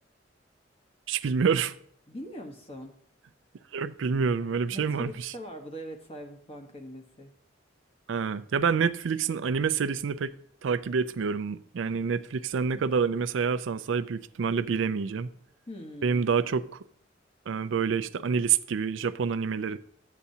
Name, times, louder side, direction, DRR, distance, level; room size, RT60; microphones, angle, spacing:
voice 1, 1.1-1.7 3.7-5.3 8.1-10.3 10.6-15.3 16.0-16.8 17.5-19.8, right 6 dB, 85° right, 0.4 m, -27 dB
voice 2, 2.1-2.9 4.7-7.3 12.5-12.9 15.7-16.3, equal, 30° left, 1.1 m, -42 dB
11.5 x 8.2 x 2.8 m
head